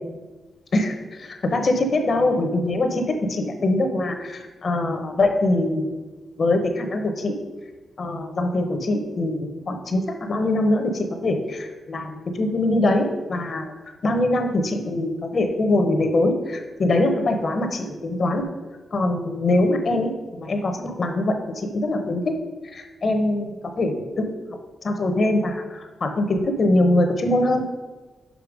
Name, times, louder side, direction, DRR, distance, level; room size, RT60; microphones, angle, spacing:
voice 1, 0.7-3.0 3.3-5.9 6.4-7.3 8.0-13.7 14.0-18.4 18.9-22.3 22.7-24.3 24.8-27.6, left 2 dB, 55° left, 6 dB, 0.9 m, -23 dB
5.6 x 5.1 x 5.1 m, 1.3 s
cardioid pair, 75°, 0 cm